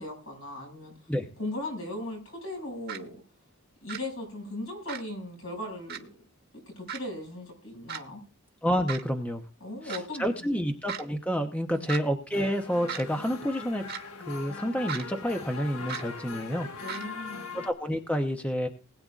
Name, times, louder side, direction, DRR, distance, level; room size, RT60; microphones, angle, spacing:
voice 1, 0.0-0.9 1.4-3.2 3.8-6.1 6.8-8.2 9.6-10.5 11.7-11.9 16.8-17.5, left 1 dB, 70° left, 1 dB, 6.3 m, -38 dB
sound 1, 2.9-3.0 3.9-4.0 4.9-5.0 5.9-6.0 6.9-7.0 7.9-8.0 8.9-9.0 9.9-10.0 10.9-11.0 11.9-12.0 12.9-13.0 13.9-14.0 14.9-15.0 15.9-16.0 16.9-17.0, right 7 dB, 50° right, 1.4 m, -35 dB
voice 2, 8.6-9.4 9.8-13.9 14.3-16.7 17.5-18.7, equal, 5° left, 4 dB, 0.8 m, -29 dB
sound 2, 12.3-17.7, left 4 dB, 85° left, 1.5 m, -41 dB
20.5 x 9.5 x 2.5 m, 0.36 s
head